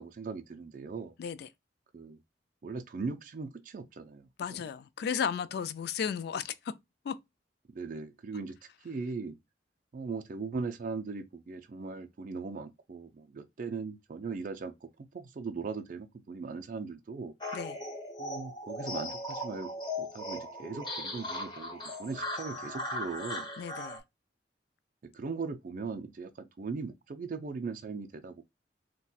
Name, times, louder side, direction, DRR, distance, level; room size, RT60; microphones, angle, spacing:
voice 1, 0.0-1.1 1.9-2.2 2.6-4.7 7.7-8.6 8.8-9.4 9.9-17.3 18.2-19.7 20.0-23.5 25.0-28.4, right 4 dB, 50° right, 0.4 m, -39 dB
voice 2, 1.2-1.5 4.4-6.5 7.1-7.2 17.5-17.8 23.6-24.0, left 7 dB, 65° left, 0.3 m, -34 dB
sound 1, 17.4-24.0, left 1 dB, 25° left, 0.9 m, -38 dB
4.0 x 2.2 x 2.2 m
head